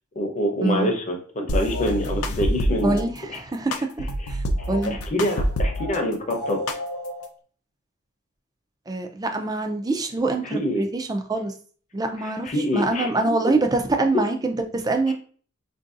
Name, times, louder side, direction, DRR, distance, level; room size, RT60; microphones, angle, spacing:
voice 1, 0.2-3.0 3.3-3.4 4.6-6.6 10.4-10.8 12.2-13.3 15.1-15.2, equal, 35° left, 3 dB, 0.7 m, -26 dB
sound 1, 1.5-3.0 3.7-6.0 6.3-7.3, equal, 90° left, 0.5 m, -26 dB
voice 2, 2.8-5.0 8.9-11.5 11.9-15.1, right 2 dB, 20° right, 5 dB, 0.4 m, -25 dB
4.6 x 2.6 x 2.4 m, 0.43 s
head